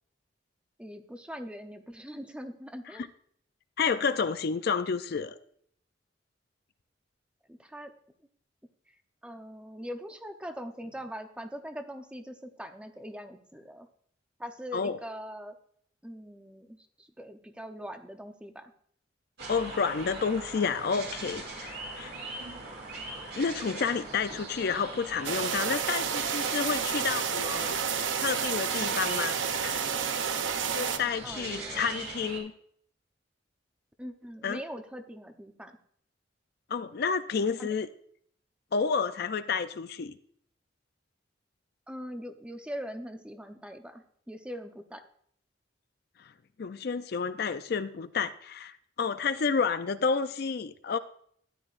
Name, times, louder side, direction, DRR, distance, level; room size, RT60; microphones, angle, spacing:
voice 1, 0.8-3.1 7.5-7.9 8.9-9.0 9.2-13.9 14.4-15.5 16.0-18.7 31.2-32.0 34.0-35.8 37.6-37.7 41.9-45.0, equal, 5° right, 6 dB, 0.7 m, -42 dB
voice 2, 3.8-5.4 14.7-15.0 19.5-22.1 23.4-27.8 28.2-29.4 30.7-32.5 34.4-34.6 36.7-37.9 38.7-40.2 46.2-46.3 46.6-51.0, left 5 dB, 55° left, 11 dB, 0.4 m, -30 dB
sound 1, 19.4-32.4, right 2 dB, 60° right, 2.4 m, -41 dB
sound 2, 25.2-31.0, right 7 dB, 90° right, 0.7 m, -30 dB
13.0 x 10.0 x 2.5 m, 0.64 s
head